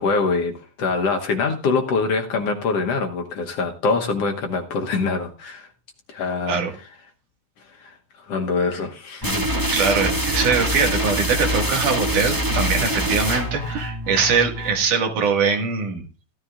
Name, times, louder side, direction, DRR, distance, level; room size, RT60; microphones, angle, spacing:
voice 1, 0.0-5.7 6.1-6.6 7.8-9.4, left 4 dB, 60° left, 3 dB, 1.9 m, -24 dB
sound 1, 9.2-14.9, equal, 15° right, 0.8 m, -24 dB
voice 2, 9.7-16.0, right 5 dB, 85° right, 2 dB, 3.5 m, -22 dB
15.5 x 13.0 x 2.5 m, 0.34 s
omnidirectional pair, 3.5 m